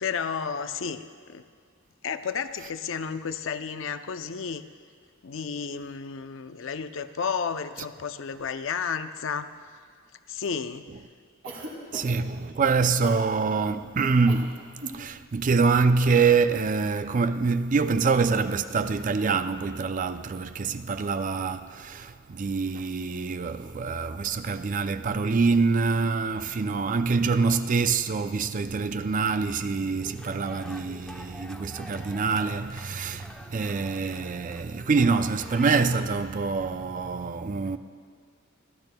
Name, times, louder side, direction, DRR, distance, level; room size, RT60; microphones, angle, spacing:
voice 1, 0.0-1.4 2.0-4.7 5.2-9.5 10.3-10.9, left 6 dB, 65° left, 0.5 m, -32 dB
Cough, 11.4-12.3 13.0-13.3 14.3-14.5 14.7-15.0, right 1 dB, 75° right, 2.3 m, -39 dB
voice 2, 11.9-37.8, right 4 dB, 40° right, 0.4 m, -25 dB
sound 1, 30.0-36.0, left 1 dB, 5° left, 0.7 m, -46 dB
28.0 x 12.0 x 2.2 m
head